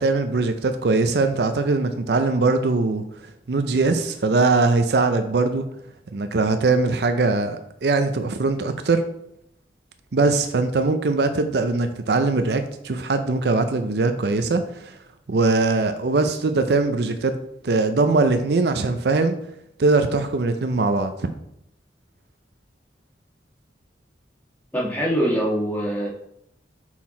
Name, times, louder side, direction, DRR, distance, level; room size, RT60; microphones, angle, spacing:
voice 1, 0.0-3.0 3.5-5.6 6.1-9.0 10.1-15.0 15.3-17.4 17.6-19.3 19.8-21.3, right 3 dB, 65° right, 8 dB, 0.5 m, -21 dB
voice 2, 24.7-26.1, equal, 10° left, -5 dB, 1.7 m, -23 dB
5.6 x 4.6 x 4.2 m, 0.77 s
head